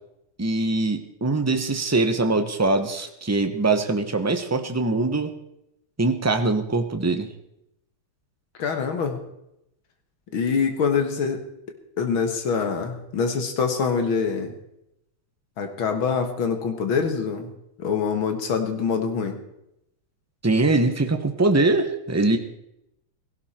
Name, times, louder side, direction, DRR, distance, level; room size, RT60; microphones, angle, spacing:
voice 1, 0.4-5.3 6.0-7.3 20.4-22.4, right 2 dB, 20° right, 7 dB, 0.5 m, -22 dB
voice 2, 8.6-9.2 10.3-11.4 12.0-14.5 15.6-17.5 17.8-19.4, left 5 dB, 70° left, 6 dB, 2.4 m, -25 dB
17.0 x 16.0 x 4.3 m, 0.83 s
omnidirectional pair, 2.3 m